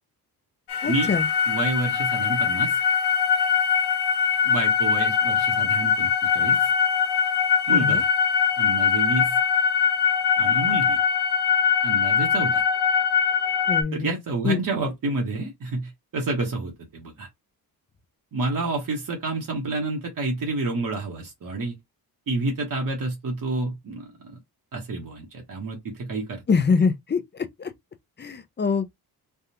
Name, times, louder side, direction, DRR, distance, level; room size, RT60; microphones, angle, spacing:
sound 1, 0.7-13.8, left 7 dB, 85° left, 0.7 m, -22 dB
voice 1, 0.8-1.2 7.7-8.0 13.7-14.1 14.4-14.6 26.5-27.2 27.6-27.7 28.2-29.0, left 5 dB, 30° left, 0.5 m, -24 dB
voice 2, 1.5-2.8 4.4-6.7 7.7-8.1 8.6-9.4 10.4-11.0 11.8-12.6 13.9-17.3 18.3-21.7 22.3-24.4 24.7-26.4, right 2 dB, 55° right, 1.2 m, -29 dB
3.4 x 2.4 x 2.8 m
cardioid pair, 115°, 39 cm